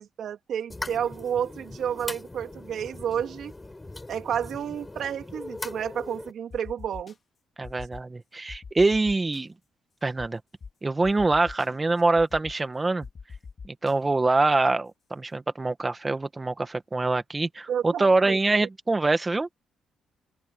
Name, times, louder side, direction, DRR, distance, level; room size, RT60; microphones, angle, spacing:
voice 1, 0.0-3.5 4.1-7.1 17.7-18.7, right 9 dB, 65° right, 3.5 m, -31 dB
sound 1, 0.7-6.3, left 2 dB, 15° left, 5.0 m, -40 dB
sound 2, 6.5-7.1 7.6-8.0 8.5-9.4 10.2-10.3 10.6-10.7 11.0-11.7 12.2-12.5 13.0-13.9, left 5 dB, 40° left, 3.2 m, -42 dB
voice 2, 7.6-9.5 10.0-10.4 10.8-13.1 13.6-19.5, right 3 dB, 20° right, 2.0 m, -24 dB
open air
cardioid pair, 90°, 0 cm